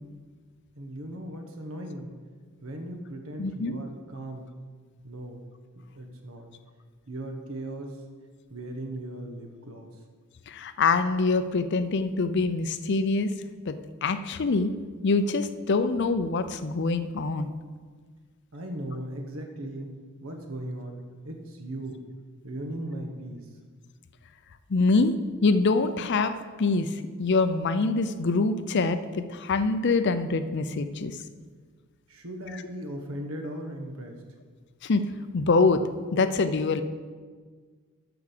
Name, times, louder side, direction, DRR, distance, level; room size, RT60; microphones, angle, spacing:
voice 1, 0.7-2.1 2.6-4.5 5.0-5.4 5.7-6.5 7.1-8.0 8.5-9.9 18.5-22.0 22.4-23.5 32.1-34.2, right 1 dB, 65° right, 4 dB, 1.3 m, -38 dB
voice 2, 3.4-3.7 10.5-13.3 13.7-14.7 15.0-17.5 24.7-25.1 25.4-31.2 34.8-35.0 35.3-35.8 36.1-36.8, left 3 dB, 50° left, 11 dB, 0.5 m, -25 dB
8.4 x 6.0 x 6.6 m, 1.5 s
head